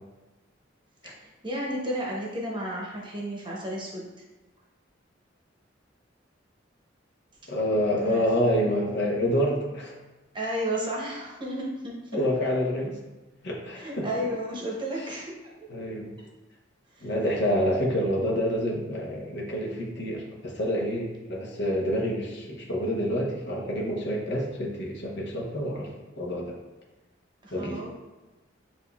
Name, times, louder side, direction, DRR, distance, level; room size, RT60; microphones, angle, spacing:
voice 1, 1.2-4.1 8.0-8.3 8.6-8.7 10.3-12.0 13.8-15.5 16.9-17.1 27.4-27.9, right 1 dB, 25° right, -3 dB, 0.9 m, -32 dB
voice 2, 7.5-10.0 12.1-13.0 13.4-14.2 15.7-16.1 17.0-26.6 27.5-27.8, equal, 65° left, -2 dB, 0.9 m, -28 dB
7.3 x 2.6 x 2.3 m, 1.1 s
head